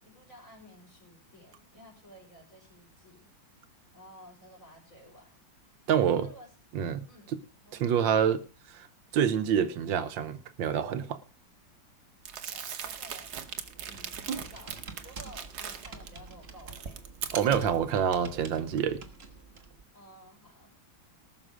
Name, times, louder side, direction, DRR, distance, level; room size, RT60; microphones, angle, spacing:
voice 1, 0.0-3.5 3.9-5.4 5.9-6.5 7.1-7.9 12.5-13.4 13.8-14.8 15.0-17.2 19.9-20.7, equal, 45° left, 5.8 m, -53 dB
voice 2, 5.9-6.3 6.7-7.1 7.8-8.4 8.7-8.9 9.1-11.2 14.3-14.4 17.3-19.0, right 8 dB, 80° right, 1.6 m, -27 dB
Crumpling crinkling, 12.3-16.1 16.5-17.8, right 8 dB, 60° right, 1.5 m, -40 dB
Computer keyboard, 12.8-19.8, right 4 dB, 35° right, 1.5 m, -46 dB
19.0 x 6.5 x 5.0 m
omnidirectional pair, 2.0 m